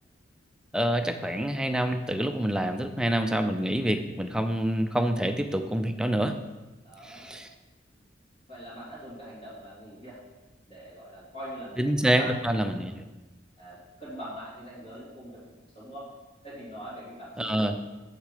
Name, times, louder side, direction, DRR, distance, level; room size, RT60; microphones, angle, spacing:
voice 1, 0.7-6.3 7.0-7.5 11.8-12.9 17.4-17.8, right 1 dB, 5° right, 6 dB, 0.5 m, -27 dB
voice 2, 6.8-7.3 8.5-10.2 10.7-13.0 13.6-15.4 15.7-16.1 16.4-17.8, equal, 40° left, -10 dB, 3.0 m, -43 dB
7.5 x 6.6 x 5.0 m, 1.1 s
head